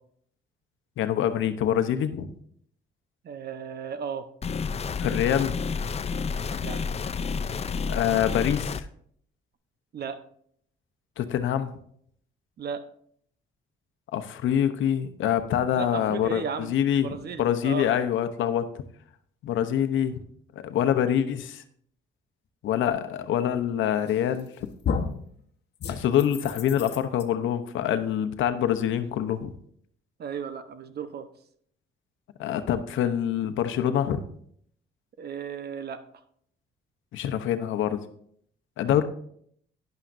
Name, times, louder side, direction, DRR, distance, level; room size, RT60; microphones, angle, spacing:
voice 1, 1.0-2.3 5.0-5.5 7.9-8.9 11.2-11.7 14.1-18.7 19.4-20.2 20.6-21.6 22.6-24.7 25.9-29.5 32.4-34.2 37.1-38.0 38.8-39.0, left 10 dB, 80° left, 10 dB, 0.9 m, -25 dB
voice 2, 3.2-4.3 6.6-6.8 9.9-10.2 12.6-12.8 15.8-17.9 30.2-31.3 35.2-36.0, right 6 dB, 55° right, 10 dB, 1.0 m, -35 dB
sound 1, 4.4-8.8, left 5 dB, 30° left, 0.5 m, -30 dB
sound 2, 24.1-24.5 24.8-25.2 25.8-27.2, left 5 dB, 60° left, 1.1 m, -31 dB
11.5 x 10.5 x 2.6 m, 0.64 s
cardioid pair, 90°, 20 cm